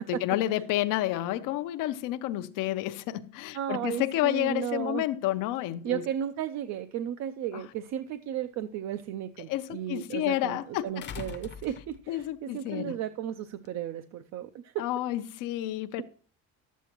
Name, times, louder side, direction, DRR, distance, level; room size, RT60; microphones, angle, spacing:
voice 1, 0.0-6.0 7.5-7.6 9.5-11.0 12.1-12.9 14.8-16.0, left 14 dB, 75° left, 0.7 m, -30 dB
voice 2, 3.5-5.0 5.8-14.8, right 10 dB, 55° right, 0.5 m, -34 dB
sound 1, 7.7-7.8 11.0-12.3 13.6-13.7, left 7 dB, 35° left, 0.7 m, -42 dB
12.0 x 8.2 x 3.0 m
cardioid pair, 145°, 32 cm